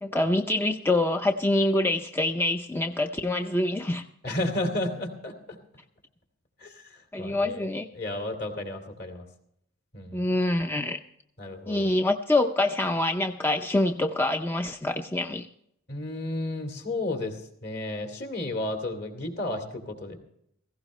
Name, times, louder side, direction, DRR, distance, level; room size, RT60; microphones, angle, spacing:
voice 1, 0.0-4.0 7.1-7.9 10.1-11.0 11.7-15.5, left 2 dB, 10° left, 6 dB, 0.5 m, -25 dB
voice 2, 4.2-5.6 6.6-7.7 7.9-9.3 9.9-10.3 11.4-11.9 15.9-20.2, left 2 dB, 50° left, 4 dB, 2.5 m, -33 dB
17.0 x 16.0 x 3.2 m, 0.75 s
head